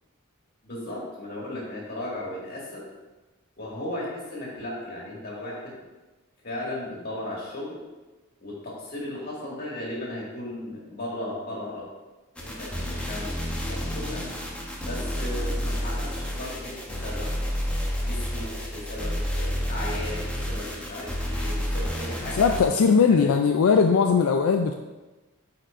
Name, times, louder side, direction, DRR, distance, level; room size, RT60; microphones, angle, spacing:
voice 1, 0.6-2.8 3.6-5.8 6.4-7.8 8.4-11.8 12.4-13.3 13.7-14.2 14.8-17.3 18.1-22.5 23.1-23.3, left 1 dB, 45° left, -5 dB, 2.1 m, -36 dB
sound 1, 12.4-22.7, equal, 5° left, 0.9 m, -30 dB
voice 2, 22.3-24.7, left 5 dB, 85° left, 5 dB, 0.4 m, -19 dB
8.8 x 4.4 x 2.6 m, 1.2 s
head